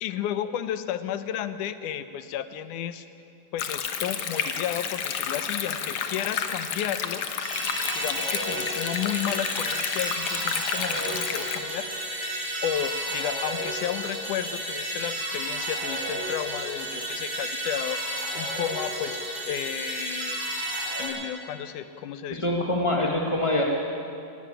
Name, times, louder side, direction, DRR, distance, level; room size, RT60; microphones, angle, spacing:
voice 1, 0.0-3.1 3.5-7.2 7.9-11.9 12.6-19.2 19.5-20.4 21.0-22.9, left 10 dB, 85° left, 11 dB, 2.3 m, -33 dB
Stream, 3.6-11.6, left 7 dB, 65° left, 2.1 m, -31 dB
sound 1, 7.4-21.1, right 1 dB, 20° right, 7.4 m, -32 dB
voice 2, 22.3-23.6, left 1 dB, 25° left, -1 dB, 0.6 m, -24 dB
18.5 x 15.5 x 9.9 m, 2.5 s
omnidirectional pair, 3.5 m